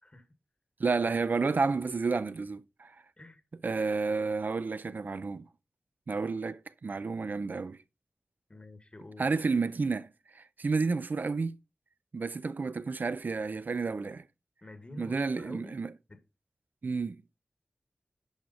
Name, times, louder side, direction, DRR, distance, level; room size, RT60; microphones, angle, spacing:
voice 1, 0.8-2.9 3.6-5.5 6.1-7.8 9.2-10.1 10.3-11.6 12.1-14.2 15.0-15.9 16.8-17.2, right 4 dB, 65° right, 0.4 m, -31 dB
voice 2, 8.5-9.3 14.6-16.2, left 2 dB, 35° left, 1.5 m, -49 dB
10.5 x 4.9 x 4.0 m
wide cardioid pair, 60°, 3 cm